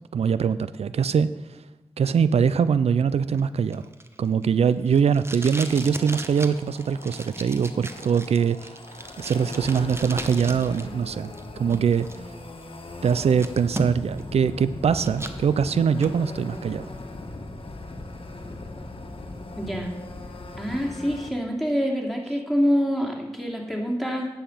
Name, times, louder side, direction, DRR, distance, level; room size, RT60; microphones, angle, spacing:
voice 1, 0.1-1.3 2.0-3.9 4.2-8.8 9.2-12.1 13.0-16.9, right 7 dB, 90° right, 14 dB, 0.4 m, -22 dB
Packing tape duct tape, 3.3-10.8 11.1-12.1 12.6-12.7 13.0-14.2 14.6-15.4 15.8-16.1, right 2 dB, 25° right, 1.0 m, -37 dB
sound 1, 5.5-21.3, left 2 dB, 60° left, 1.3 m, -40 dB
voice 2, 19.6-19.9 20.6-24.3, equal, ahead, -1 dB, 2.7 m, -26 dB
10.0 x 7.8 x 5.6 m, 1.1 s
cardioid pair, 50°, 10 cm